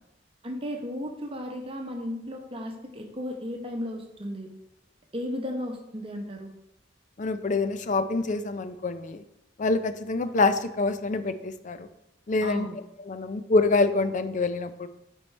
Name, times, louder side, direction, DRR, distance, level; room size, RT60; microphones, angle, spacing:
voice 1, 0.4-4.5 5.1-6.5 12.4-12.8, equal, 30° right, 3 dB, 1.0 m, -34 dB
voice 2, 7.2-9.2 9.6-11.9 12.3-12.7 13.1-14.9, left 3 dB, 45° left, 11 dB, 0.5 m, -26 dB
9.5 x 4.6 x 3.3 m, 0.84 s
head